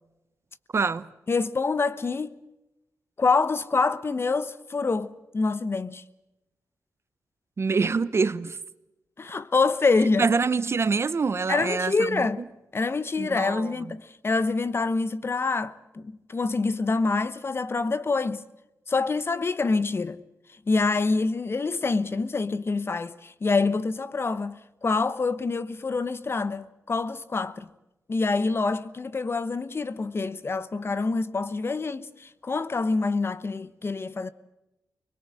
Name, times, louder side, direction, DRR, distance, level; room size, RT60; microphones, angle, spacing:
voice 1, 0.7-1.1 7.6-8.6 10.2-12.3 13.2-13.9, right 4 dB, 45° right, 0.9 m, -25 dB
voice 2, 1.3-2.4 3.2-6.0 9.2-10.3 11.5-12.4 12.7-18.4 18.9-20.2 20.7-27.7 28.1-34.3, left 3 dB, 40° left, 1.0 m, -26 dB
22.5 x 21.0 x 7.6 m
cardioid pair, 75°, 6 cm